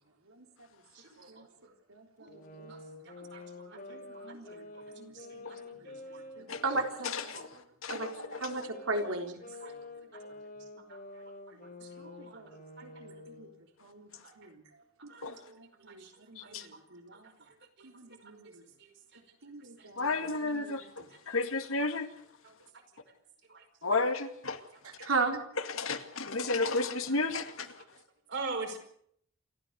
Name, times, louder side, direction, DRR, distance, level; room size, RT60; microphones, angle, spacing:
voice 1, 0.9-1.7 2.2-2.3 2.7-2.8 3.0-6.6 7.3-7.4 9.6-12.4 12.8-13.4 14.2-14.3 15.1-16.1 16.4-16.8 17.1-17.9 18.2-18.5 18.8-19.2 19.8-19.9 22.4-22.8 23.5-23.6 27.8-27.9 28.3-28.8, right 3 dB, 55° right, 4 dB, 4.9 m, -47 dB
voice 2, 1.9-2.7 3.7-5.9 6.4-7.1 7.9-8.1 8.4-9.4 12.0-12.5 12.8-13.5 13.8-14.1 14.4-14.6 15.0-17.3 17.8-18.6 19.4-20.1 20.5-20.8 25.0-25.4, right 3 dB, 80° right, 3 dB, 3.8 m, -38 dB
sound 1, 2.3-7.5 8.0-13.6, left 2 dB, 40° left, 4.0 m, -48 dB
voice 3, 7.0-8.7 15.2-15.4 16.4-16.7 20.0-22.1 23.8-24.6 25.0-25.1 25.6-27.8, left 3 dB, 70° left, 7 dB, 2.2 m, -33 dB
28.5 x 14.0 x 6.7 m, 0.67 s
head